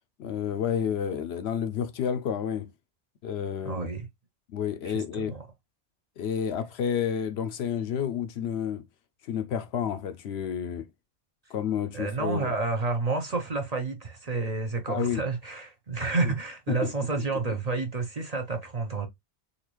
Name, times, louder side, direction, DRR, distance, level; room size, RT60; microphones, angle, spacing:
voice 1, 0.2-2.7 3.2-3.9 4.5-5.3 6.2-8.8 9.2-10.8 11.5-12.5 14.9-15.2 16.7-16.9, left 8 dB, 70° left, 0.8 m, -30 dB
voice 2, 3.6-4.1 4.8-5.4 11.9-19.1, right 3 dB, 40° right, 0.7 m, -30 dB
4.0 x 2.5 x 2.9 m
omnidirectional pair, 1.2 m